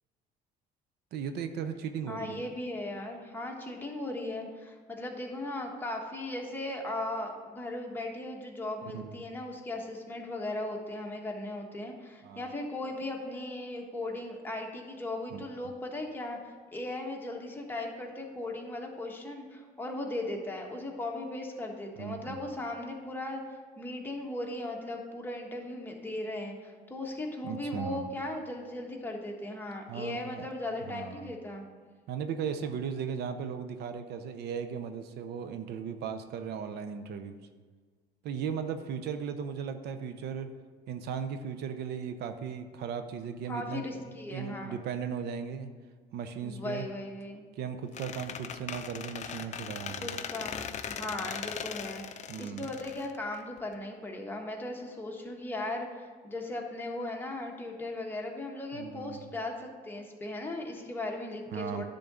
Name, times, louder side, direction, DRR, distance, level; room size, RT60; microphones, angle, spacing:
voice 1, 1.1-2.4 8.9-9.2 12.2-12.5 15.3-15.4 22.0-22.4 27.4-28.0 29.9-30.5 30.8-31.3 32.1-37.4 38.2-40.5 40.9-45.7 46.1-46.8 47.6-50.2 52.3-52.7 58.7-59.2 61.5-61.8, right 7 dB, 75° right, 9 dB, 0.6 m, -37 dB
voice 2, 2.1-31.6 43.5-44.8 46.4-47.4 50.0-61.8, left 2 dB, 10° left, 0 dB, 1.4 m, -37 dB
Squeak, 47.9-53.7, left 7 dB, 45° left, 0.5 m, -39 dB
10.5 x 3.8 x 6.8 m, 1.5 s
cardioid pair, 110°, 17 cm